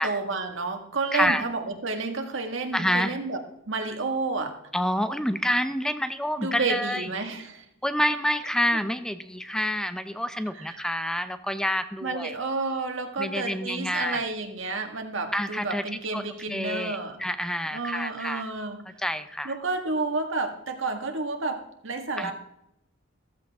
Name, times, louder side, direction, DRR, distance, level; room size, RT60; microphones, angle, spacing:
voice 1, 0.0-3.4 3.7-4.5 6.4-7.7 9.6-9.7 10.6-10.7 12.0-17.2 17.7-18.9 19.5-22.3, right 3 dB, 70° right, 4 dB, 1.8 m, -30 dB
voice 2, 1.1-1.4 2.7-3.2 4.7-7.1 7.8-12.3 13.2-14.2 15.3-15.8 16.1-18.5 19.0-19.5 22.2-22.3, equal, 5° left, 10 dB, 0.6 m, -28 dB
15.0 x 14.0 x 3.6 m, 0.81 s
head